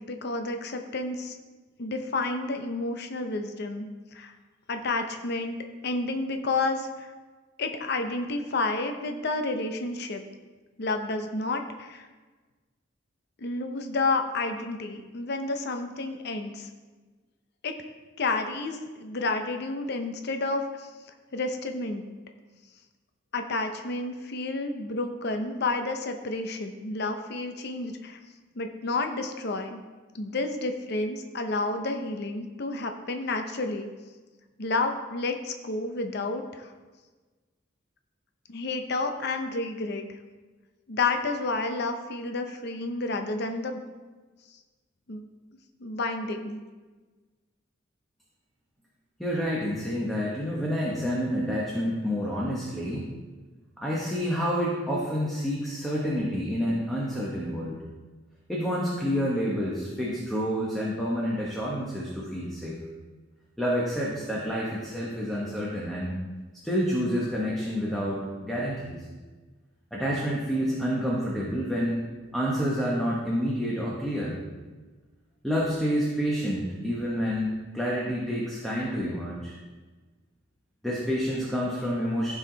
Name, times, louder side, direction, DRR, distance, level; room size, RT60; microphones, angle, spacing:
voice 1, 0.0-1.4 1.8-4.3 4.7-5.6 5.8-7.1 7.6-10.2 10.8-12.1 13.4-16.7 17.6-17.7 18.2-20.9 21.3-22.0 23.3-28.2 28.5-29.8 30.1-33.9 34.6-36.7 38.5-40.0 40.9-43.8 45.1-45.2 45.8-46.6, left 3 dB, 60° left, 6 dB, 0.7 m, -30 dB
voice 2, 49.2-53.1 53.8-57.8 58.5-62.8 63.6-66.2 66.6-69.0 69.9-72.0 72.3-74.4 75.4-79.5 80.8-82.4, equal, ahead, -5 dB, 1.2 m, -28 dB
14.5 x 4.8 x 4.0 m, 1.3 s
head